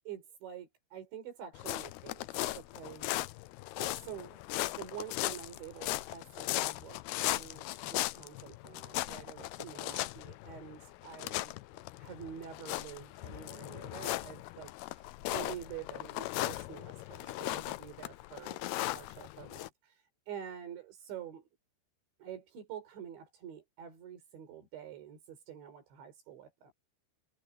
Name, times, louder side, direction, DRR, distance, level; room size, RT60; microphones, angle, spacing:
voice 1, 0.1-2.3 2.6-3.4 3.7-21.5 22.2-26.7, right 9 dB, 85° right, 6.9 m, -47 dB
sound 1, 1.5-19.7, left 18 dB, 85° left, 2.3 m, -38 dB
omnidirectional pair, 5.1 m